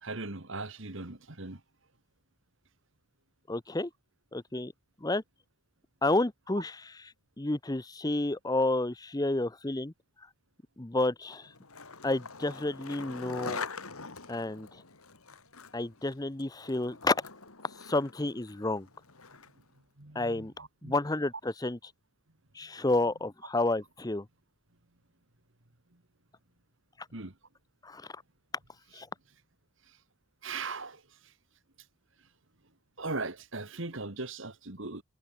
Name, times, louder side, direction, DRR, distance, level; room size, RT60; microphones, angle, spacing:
voice 1, 0.0-1.6 20.0-20.9 27.1-27.3 29.9-30.0 30.4-31.3 33.0-35.0, right 3 dB, 60° right, 2.1 m, -39 dB
voice 2, 3.5-3.9 4.3-4.7 5.0-5.2 6.0-6.9 7.4-9.9 10.8-11.5 12.0-13.7 14.3-14.8 15.7-17.2 17.8-18.9 20.1-20.5 20.8-21.8 22.5-24.3 27.8-28.1 28.9-29.1, left 2 dB, 15° left, 0.7 m, -30 dB
Skateboard, 11.3-19.7, left 4 dB, 85° left, 3.7 m, -44 dB
head